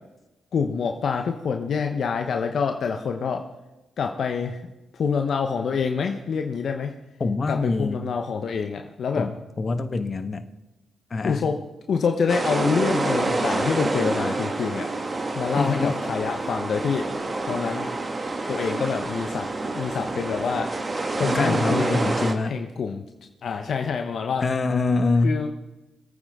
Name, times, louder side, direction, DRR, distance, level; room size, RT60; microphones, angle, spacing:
voice 1, 0.5-3.5 4.0-4.7 4.9-6.9 7.5-9.3 11.2-11.6 11.9-14.9 15.3-17.1 17.5-17.9 18.5-19.5 19.7-20.7 21.1-22.1 22.4-23.0 23.4-24.5 25.2-25.5, left 6 dB, 65° left, 5 dB, 1.0 m, -26 dB
voice 2, 7.2-8.0 9.2-10.4 11.1-11.5 15.6-15.9 21.2-22.6 24.4-25.4, left 3 dB, 45° left, 9 dB, 1.3 m, -24 dB
sound 1, 12.3-22.3, right 2 dB, 40° right, 1.8 m, -27 dB
24.0 x 9.1 x 3.7 m, 1.0 s
supercardioid pair, 45°, 0 cm